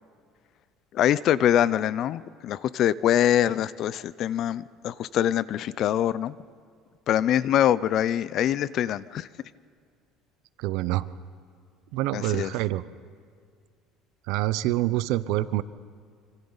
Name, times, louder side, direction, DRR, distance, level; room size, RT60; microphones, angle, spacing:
voice 1, 0.9-6.3 7.1-9.3 12.1-12.5, left 11 dB, 50° left, 19 dB, 0.5 m, -24 dB
voice 2, 10.6-11.1 11.9-12.8 14.3-15.6, right 16 dB, 75° right, 15 dB, 0.7 m, -26 dB
26.0 x 25.5 x 4.0 m, 2.2 s
cardioid pair, 140°, 0 cm